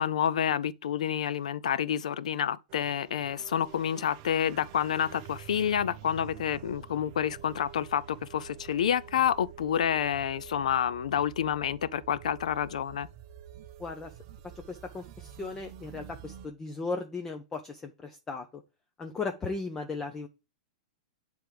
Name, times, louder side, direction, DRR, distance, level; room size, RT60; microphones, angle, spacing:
voice 1, 0.0-13.1, left 9 dB, 85° left, 0.5 m, -29 dB
sound 1, 2.7-16.5, right 11 dB, 40° right, 0.6 m, -48 dB
voice 2, 13.8-14.1 14.6-18.6 19.0-20.3, left 3 dB, 15° left, 0.5 m, -36 dB
7.7 x 3.5 x 4.8 m
supercardioid pair, 155°, 4 cm